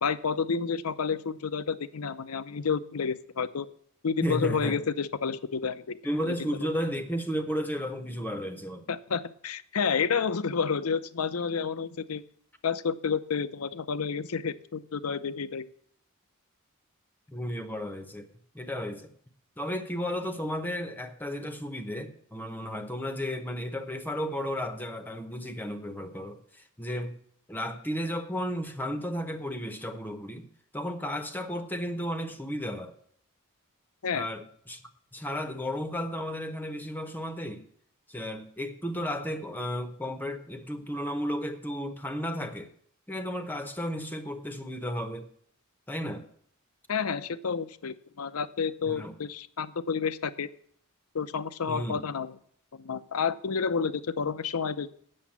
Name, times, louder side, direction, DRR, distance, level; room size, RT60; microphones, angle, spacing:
voice 1, 0.0-3.7 4.0-6.0 6.2-6.5 8.9-12.2 12.6-15.7 34.0-34.3 46.9-50.5 51.1-52.4 52.7-54.9, left 6 dB, 85° left, 0.6 m, -30 dB
voice 2, 4.2-4.8 6.0-8.9 17.3-18.3 18.5-19.1 19.6-27.1 27.5-30.5 30.7-33.0 34.1-34.8 35.1-37.6 38.1-42.7 43.1-45.3 45.9-46.3 48.9-49.1 51.7-52.0, equal, 10° left, 0.8 m, -33 dB
8.7 x 7.0 x 7.2 m
head